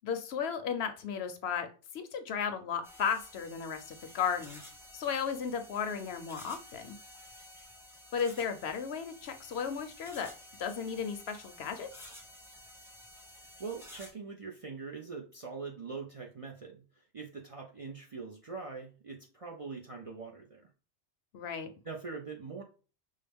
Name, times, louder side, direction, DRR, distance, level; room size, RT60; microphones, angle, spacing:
voice 1, 0.0-1.7 1.9-4.6 4.9-7.0 8.1-10.3 10.6-11.9 21.3-21.7, left 7 dB, 70° left, 7 dB, 0.8 m, -34 dB
sound 1, 2.8-14.1, left 1 dB, 5° right, 0.7 m, -52 dB
voice 2, 13.4-16.8 17.1-20.7 21.8-22.6, right 4 dB, 45° right, -1 dB, 0.4 m, -43 dB
5.5 x 2.1 x 3.4 m, 0.36 s
omnidirectional pair, 1.2 m